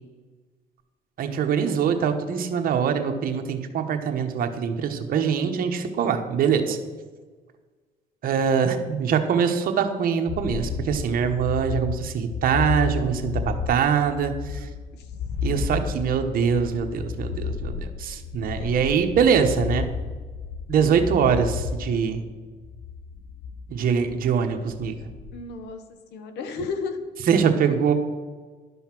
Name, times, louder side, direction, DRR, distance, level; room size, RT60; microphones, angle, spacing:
voice 1, 1.2-6.8 8.2-14.7 15.4-19.9 20.7-22.2 23.7-25.0 27.3-27.9, right 7 dB, 60° right, 6 dB, 1.1 m, -23 dB
sound 1, 10.3-25.5, left 6 dB, 60° left, 0.7 m, -32 dB
voice 2, 25.3-25.8 26.1-27.0 27.4-27.9, left 4 dB, 80° left, 7 dB, 1.2 m, -34 dB
11.5 x 5.6 x 6.0 m, 1.4 s
cardioid pair, 110°, 17 cm